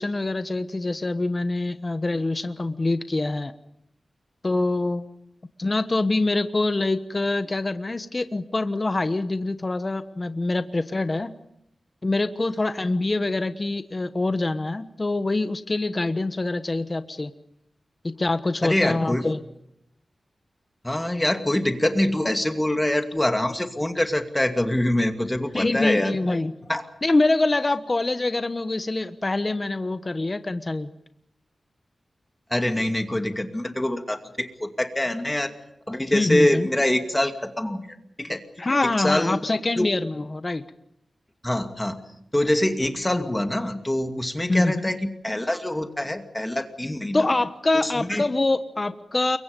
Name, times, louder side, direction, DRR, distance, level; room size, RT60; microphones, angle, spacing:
voice 1, 0.0-3.5 4.4-5.1 5.6-11.3 12.0-17.3 18.0-19.4 25.5-26.5 27.0-30.9 36.1-36.7 38.6-40.6 44.5-44.8 47.1-49.4, left 2 dB, 30° left, 10 dB, 1.2 m, -25 dB
voice 2, 18.6-19.3 20.8-26.2 26.7-26.9 32.5-35.5 35.9-37.9 38.2-38.4 38.8-39.4 39.8-39.9 41.4-42.0 42.3-47.2 47.7-48.3, left 1 dB, 15° left, 6 dB, 2.5 m, -24 dB
28.5 x 23.5 x 5.3 m, 0.80 s
wide cardioid pair, 100°, 0 cm